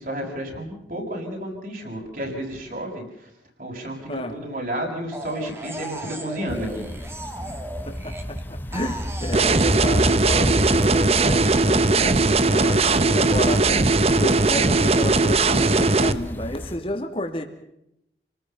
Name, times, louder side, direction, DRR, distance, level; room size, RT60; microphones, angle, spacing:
voice 1, 0.0-3.3 3.6-6.8, right 1 dB, 50° right, 1 dB, 7.1 m, -31 dB
sound 1, 5.1-8.4 8.7-11.6, right 1 dB, 15° right, 2.4 m, -37 dB
sound 2, 6.5-16.8, equal, 10° left, 1.7 m, -31 dB
voice 2, 7.9-17.4, left 1 dB, 30° left, 6 dB, 2.7 m, -31 dB
sound 3, 9.3-16.1, right 3 dB, 35° right, 0.9 m, -19 dB
30.0 x 19.5 x 5.6 m, 0.79 s
head